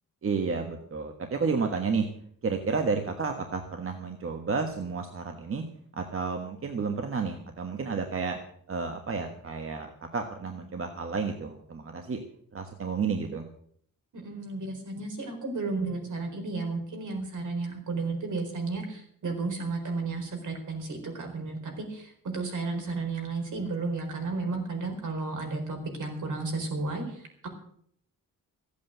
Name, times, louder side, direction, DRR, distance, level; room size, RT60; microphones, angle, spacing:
voice 1, 0.2-2.1 2.4-5.6 5.9-8.4 8.7-12.2 12.5-13.4, right 5 dB, 40° right, 4 dB, 1.4 m, -31 dB
voice 2, 14.1-27.5, right 3 dB, 60° right, 3 dB, 4.5 m, -33 dB
15.0 x 8.6 x 8.0 m, 0.65 s
wide cardioid pair, 155°, 34 cm